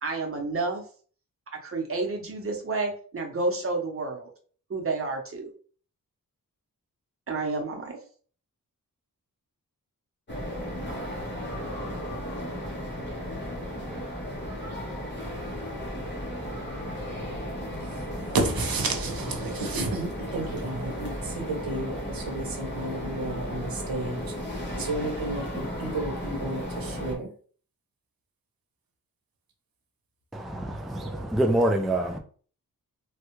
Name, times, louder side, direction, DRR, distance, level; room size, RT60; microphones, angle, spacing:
voice 1, 0.0-0.8 1.5-4.3 4.7-5.5 7.3-8.0, right 3 dB, 40° right, 1 dB, 0.8 m, -30 dB
sound 1, 10.3-27.1, equal, 30° left, 1.1 m, -34 dB
voice 2, 18.3-21.1 21.4-24.2 24.8-27.3, right 2 dB, 85° right, 3 dB, 0.8 m, -31 dB
voice 3, 30.3-32.2, right 1 dB, ahead, 3 dB, 0.3 m, -26 dB
3.2 x 2.3 x 3.0 m, 0.43 s
wide cardioid pair, 120°, 34 cm